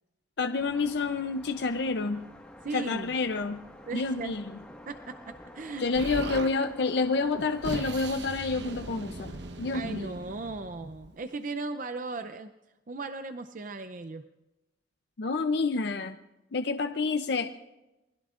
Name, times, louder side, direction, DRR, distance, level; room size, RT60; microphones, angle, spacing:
voice 1, 0.4-2.2 2.7-3.6 3.9-4.6 5.8-10.1 15.2-16.2 16.5-17.5, left 4 dB, 60° left, 7 dB, 0.6 m, -29 dB
sound 1, 0.6-8.1, left 1 dB, 5° left, 1.6 m, -49 dB
voice 2, 2.6-3.1 3.9-4.4 4.9-5.9 9.7-12.5 12.9-14.3, right 3 dB, 45° right, 10 dB, 0.6 m, -37 dB
Explosion, 5.9-6.5 7.3-11.2, right 2 dB, 65° right, 1.1 m, -39 dB
27.5 x 21.0 x 2.5 m, 1.0 s
head